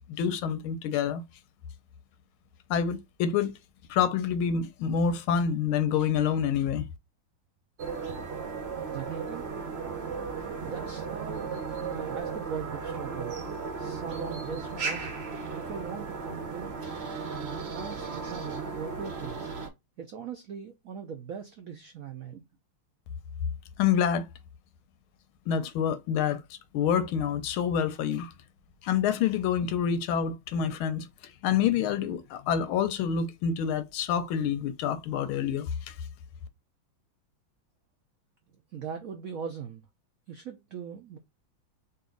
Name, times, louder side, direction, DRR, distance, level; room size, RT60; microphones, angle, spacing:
voice 1, 0.2-1.2 2.7-3.5 3.9-6.9 23.8-24.2 25.5-28.3 28.8-31.1 31.4-35.9, left 8 dB, 85° left, 1.6 m, -27 dB
sound 1, 7.8-19.7, right 5 dB, 50° right, 0.8 m, -35 dB
voice 2, 8.9-9.4 10.6-11.5 11.8-13.3 13.8-15.1 15.6-16.7 17.3-19.5 20.0-22.4 38.7-39.8 40.3-41.2, right 6 dB, 85° right, 0.7 m, -40 dB
4.1 x 2.5 x 3.7 m
omnidirectional pair, 2.2 m